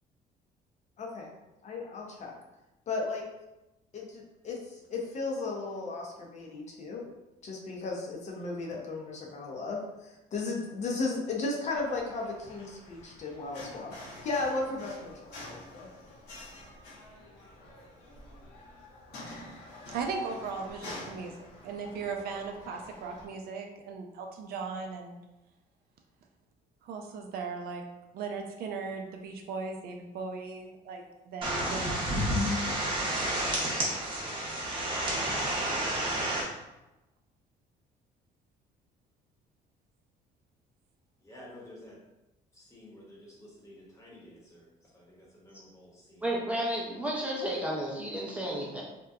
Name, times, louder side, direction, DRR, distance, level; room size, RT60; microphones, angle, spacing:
voice 1, 1.0-1.3 1.6-2.3 2.9-3.3 3.9-7.0 7.4-15.9, left 3 dB, 45° left, -1 dB, 0.5 m, -35 dB
sound 1, 11.7-23.2, left 1 dB, 80° left, 0.8 m, -47 dB
voice 2, 19.9-21.3 21.6-25.2 26.8-27.8 28.1-32.6, right 4 dB, 65° right, 3 dB, 0.4 m, -38 dB
sound 2, 31.4-36.4, right 1 dB, 30° right, 0.7 m, -30 dB
voice 3, 41.2-42.0 42.5-44.7 44.9-46.3, left 1 dB, 15° left, -4 dB, 0.8 m, -52 dB
voice 4, 46.2-48.8, right 1 dB, 10° right, -5 dB, 0.5 m, -32 dB
2.7 x 2.1 x 2.3 m, 1.0 s
cardioid pair, 110°, 17 cm